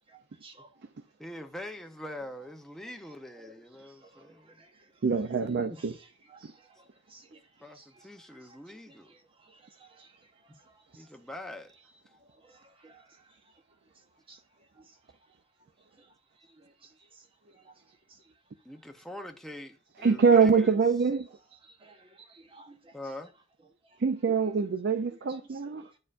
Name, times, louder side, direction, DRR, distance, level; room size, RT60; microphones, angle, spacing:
voice 1, 0.1-0.7 3.8-4.7 5.8-5.9 6.3-7.4 7.7-8.1 9.4-10.1 10.4-10.5 12.4-13.0 14.3-14.4 16.6-16.9 17.5-17.7 21.6-22.9 25.7-25.8, right 3 dB, 25° right, 1.0 m, -56 dB
voice 2, 1.2-4.6 7.6-9.2 11.0-11.7 18.6-20.8 22.9-23.3, left 1 dB, ahead, 0.6 m, -43 dB
voice 3, 5.0-6.0 20.0-21.3 24.0-25.9, right 5 dB, 55° right, 0.4 m, -24 dB
9.6 x 4.4 x 2.5 m
head